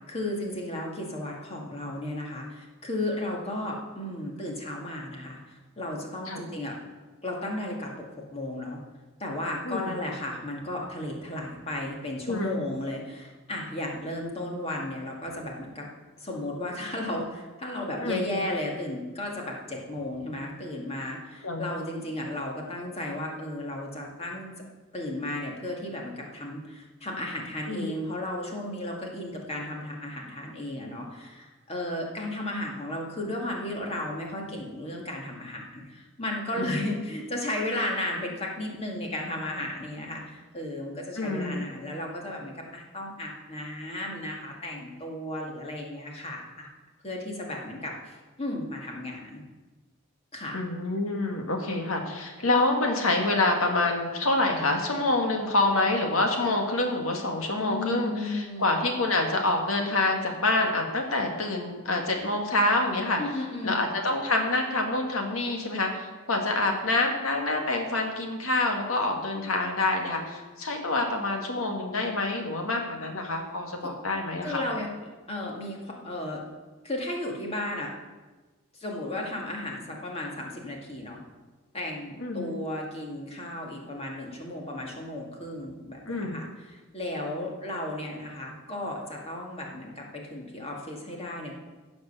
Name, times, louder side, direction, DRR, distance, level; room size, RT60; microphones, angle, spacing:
voice 1, 0.1-6.8 7.2-7.9 8.3-8.8 9.2-15.9 16.2-24.5 24.9-46.7 47.0-49.4 50.3-50.6 57.6-58.8 63.2-63.9 73.8-73.9 74.4-74.9 75.3-76.4 76.8-77.9 78.7-81.2 81.7-91.6, left 1 dB, 30° left, -1 dB, 2.1 m, -34 dB
voice 2, 9.6-10.0 12.3-12.6 18.0-18.3 21.4-21.7 27.7-27.9 36.6-36.9 41.2-41.6 50.5-63.2 63.6-74.6 82.2-82.6 86.1-86.4, left 2 dB, 85° left, 2 dB, 2.0 m, -27 dB
15.5 x 5.3 x 6.8 m, 1.2 s
head